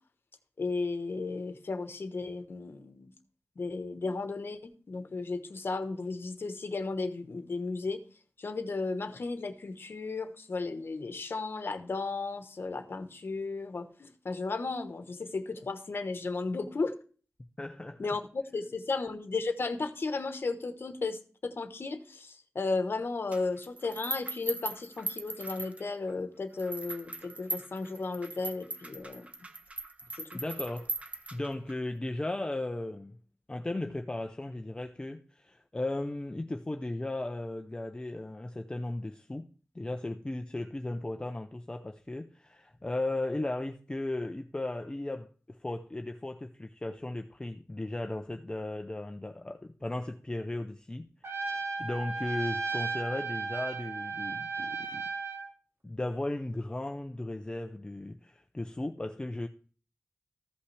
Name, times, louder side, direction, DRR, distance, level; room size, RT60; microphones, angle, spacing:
voice 1, 0.6-3.1 3.6-8.0 8.4-16.9 18.0-29.3 30.1-30.4, left 3 dB, 55° left, 1.0 m, -34 dB
voice 2, 17.6-18.0 30.3-30.9 31.3-33.2 33.5-39.5 39.7-45.3 45.6-51.1 51.4-55.0 55.8-59.5, left 2 dB, 20° left, 0.5 m, -36 dB
sound 1, 23.3-26.1 26.6-31.7, right 2 dB, 30° right, 0.6 m, -39 dB
Trumpet, 51.2-55.5, right 4 dB, 70° right, 1.2 m, -35 dB
14.5 x 5.7 x 3.2 m
wide cardioid pair, 110°, 4 cm